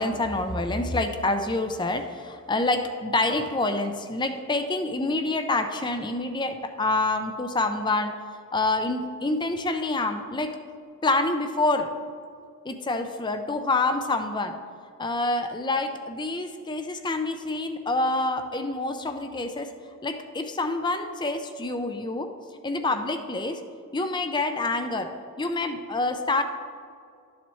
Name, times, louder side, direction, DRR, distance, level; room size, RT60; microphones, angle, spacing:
voice 1, 0.0-8.1 8.5-10.5 11.0-11.9 12.6-14.5 15.0-19.7 20.0-22.3 22.6-23.6 23.9-25.1 25.4-26.4, left 2 dB, 20° left, 7 dB, 0.6 m, -27 dB
12.5 x 7.2 x 3.1 m, 2.3 s
head